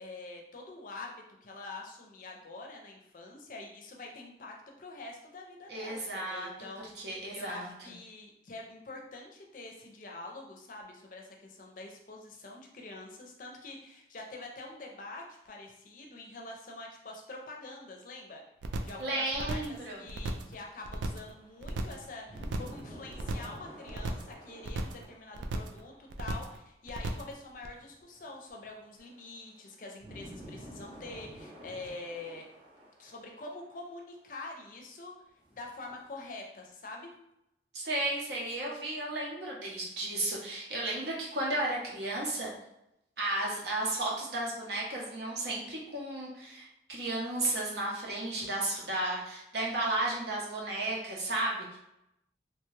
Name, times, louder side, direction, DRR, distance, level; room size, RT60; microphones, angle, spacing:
voice 1, 0.0-18.4 18.8-32.5 33.0-35.1 35.5-37.1, left 2 dB, 45° left, 1 dB, 0.5 m, -45 dB
voice 2, 5.7-6.5 7.0-7.7 19.0-20.1 37.7-42.5 43.2-51.8, right 2 dB, 65° right, -3 dB, 0.8 m, -33 dB
sound 1, 18.6-19.0 19.3-19.8 20.1-20.5 20.8-21.3 21.6-22.1 22.4-22.8 23.1-23.6 23.9-24.3 24.6-25.0 25.3-25.8 26.1-26.6 26.9-27.3 27.6-27.7, right 2 dB, 85° right, 0.3 m, -36 dB
sound 2, 20.0-26.2 27.5-34.0 34.3-34.4 35.4-36.3, equal, 30° right, 0.6 m, -51 dB
2.8 x 2.2 x 3.1 m, 0.84 s
head